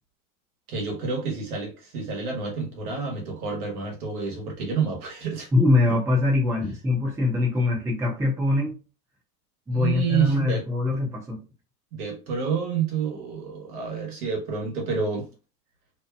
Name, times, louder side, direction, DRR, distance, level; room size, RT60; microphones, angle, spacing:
voice 1, 0.7-5.5 9.7-10.6 11.9-15.2, right 6 dB, 65° right, 1.2 m, -29 dB
voice 2, 5.5-8.8 9.7-11.4, left 2 dB, 5° right, 0.7 m, -23 dB
2.9 x 2.1 x 2.3 m
hypercardioid pair, 100°, 47 cm